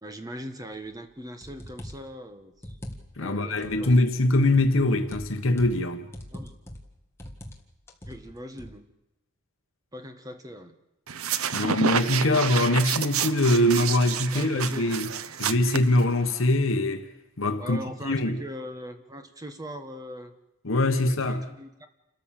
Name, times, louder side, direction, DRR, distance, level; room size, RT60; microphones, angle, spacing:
voice 1, 0.0-2.7 3.1-4.1 6.3-6.5 8.1-8.9 9.9-10.7 14.3-14.9 17.6-20.3 20.9-21.9, equal, 15° right, 1.5 m, -40 dB
sound 1, 0.9-1.0 1.4-2.1 2.6-3.3 3.6-4.1 4.5-5.8 6.1-6.9 7.2-7.6 7.9-8.7, equal, 10° left, 1.9 m, -42 dB
voice 2, 3.2-6.1 11.5-15.1 15.4-17.1 17.4-17.8 18.0-18.4 20.6-21.5, left 1 dB, 65° left, 1.2 m, -23 dB
sound 2, 11.1-16.4, right 7 dB, 80° right, 0.8 m, -29 dB
29.0 x 13.5 x 7.5 m
head